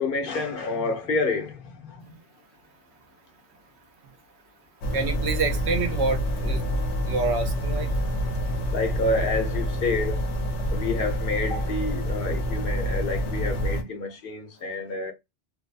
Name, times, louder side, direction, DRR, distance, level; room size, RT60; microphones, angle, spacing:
voice 1, 0.0-1.6 1.9-2.0 8.7-10.2 10.7-15.1, left 3 dB, 60° left, 0.8 m, -28 dB
sound 1, 4.8-13.8, equal, 85° left, 0.9 m, -27 dB
voice 2, 4.9-6.6 7.0-7.9, right 3 dB, 75° right, 1.0 m, -27 dB
2.5 x 2.2 x 2.4 m
omnidirectional pair, 1.1 m